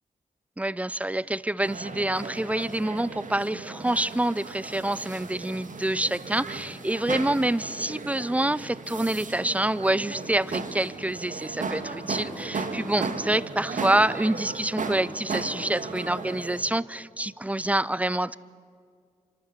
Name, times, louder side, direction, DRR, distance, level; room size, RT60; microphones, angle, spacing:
voice 1, 0.6-18.4, right 1 dB, 10° right, 21 dB, 0.6 m, -27 dB
sound 1, 1.6-16.6, right 4 dB, 55° right, 2.1 m, -36 dB
26.5 x 12.5 x 9.7 m, 2.1 s
supercardioid pair, 45°, 16 cm